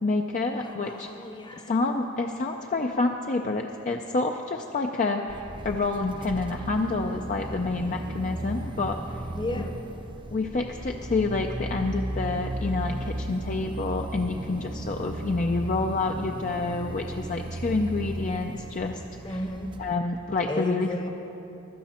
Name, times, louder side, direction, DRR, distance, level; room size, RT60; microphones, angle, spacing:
voice 1, 0.0-1.1 1.7-9.2 10.3-19.0 19.3-19.4 19.8-21.1, left 3 dB, 40° left, 3 dB, 0.5 m, -28 dB
voice 2, 0.6-1.8 9.3-9.8 19.2-19.8 20.5-21.1, left 1 dB, 20° left, 5 dB, 0.9 m, -34 dB
sound 1, 5.3-20.0, right 1 dB, 25° right, 0.5 m, -35 dB
16.0 x 12.0 x 4.3 m, 3.0 s
head